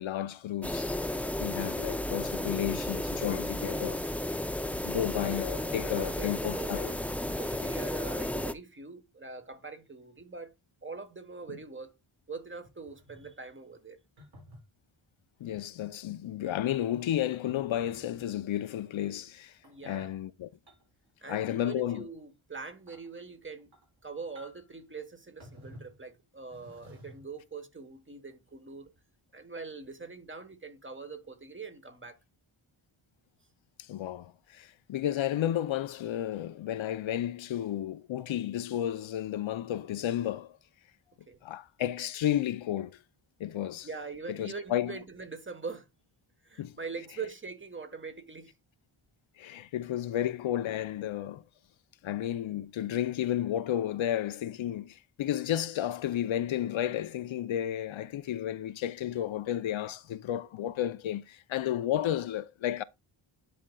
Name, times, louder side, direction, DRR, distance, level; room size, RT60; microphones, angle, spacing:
voice 1, 0.0-4.0 4.8-7.0 15.4-19.6 19.8-20.5 21.3-22.1 33.8-40.6 41.4-43.0 43.4-43.9 44.3-45.0 46.6-46.8 49.4-51.4 52.0-62.8, left 11 dB, 70° left, 0.5 m, -32 dB
sound 1, 0.6-8.5, left 1 dB, 5° left, 0.3 m, -33 dB
voice 2, 5.6-7.1 7.3-10.5 10.8-11.9 12.3-14.0 19.6-20.1 21.2-23.7 24.0-28.9 29.3-32.2 41.3-41.4 43.8-45.9 46.4-48.5, right 4 dB, 25° right, 1.2 m, -43 dB
sound 2, 12.6-13.4 14.2-14.6 15.5-15.7 16.3-18.4 19.5-20.1 20.7-21.0 21.3-21.8 22.1-22.2 22.7-23.1 23.6-24.0 24.3-24.8 25.4-26.0 26.5-27.4 28.3-28.5, equal, 65° right, 5.1 m, -54 dB
10.0 x 5.1 x 2.2 m
wide cardioid pair, 95°, 48 cm